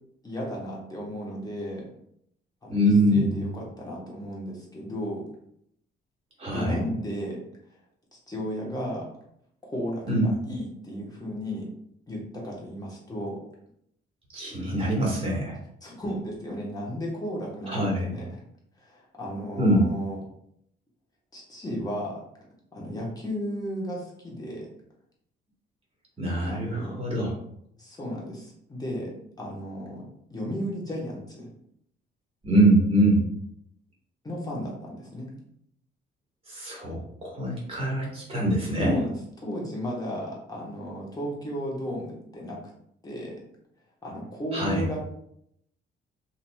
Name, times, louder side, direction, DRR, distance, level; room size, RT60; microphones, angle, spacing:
voice 1, 0.2-1.9 2.6-5.2 6.5-7.4 8.1-9.1 9.7-11.7 12.1-13.4 15.8-18.4 18.8-20.2 21.3-22.2 22.7-24.6 26.5-27.0 27.8-31.5 34.2-35.3 38.8-42.6 43.0-43.4 44.0-45.0, equal, 20° left, -3 dB, 1.1 m, -34 dB
voice 2, 2.7-3.4 6.4-6.8 10.1-10.3 14.3-15.5 17.7-18.1 19.6-19.8 26.2-27.3 32.4-33.2 36.5-39.0 44.5-44.8, right 1 dB, 30° right, -4 dB, 1.4 m, -23 dB
2.9 x 2.7 x 2.2 m, 0.72 s
cardioid pair, 90°, 20 cm